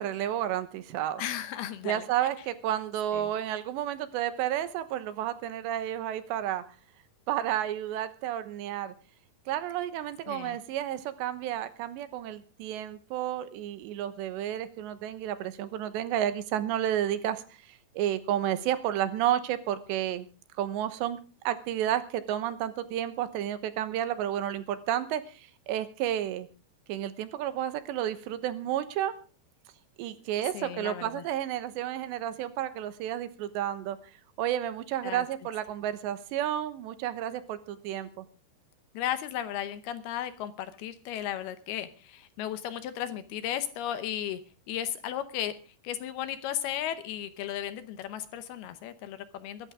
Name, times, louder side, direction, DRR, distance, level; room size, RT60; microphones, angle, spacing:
voice 1, 0.0-1.2 1.8-6.6 7.3-8.9 9.5-20.3 20.6-21.2 21.4-26.5 26.9-29.1 30.0-34.0 34.4-38.3, right 11 dB, 85° right, 12 dB, 3.3 m, -31 dB
voice 2, 1.2-2.1 3.1-3.3 10.3-10.6 30.5-31.2 35.0-35.2 38.9-44.4 44.7-45.5 45.8-49.7, left 11 dB, 75° left, 11 dB, 2.6 m, -35 dB
23.0 x 11.5 x 3.6 m, 0.35 s
omnidirectional pair, 5.0 m